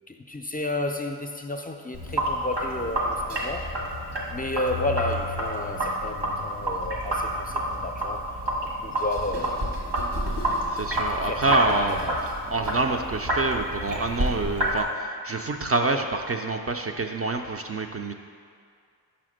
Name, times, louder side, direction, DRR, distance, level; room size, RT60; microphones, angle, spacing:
voice 1, 0.1-3.7 4.3-8.2 8.8-9.8 11.2-12.1, left 2 dB, 20° left, 3 dB, 0.4 m, -32 dB
Sink (filling or washing), 1.9-14.8, right 1 dB, 85° right, 1.4 m, -29 dB
voice 2, 10.7-12.0 12.5-18.1, right 2 dB, 35° right, 3 dB, 0.4 m, -27 dB
5.8 x 4.3 x 6.3 m, 2.2 s
wide cardioid pair, 75°, 42 cm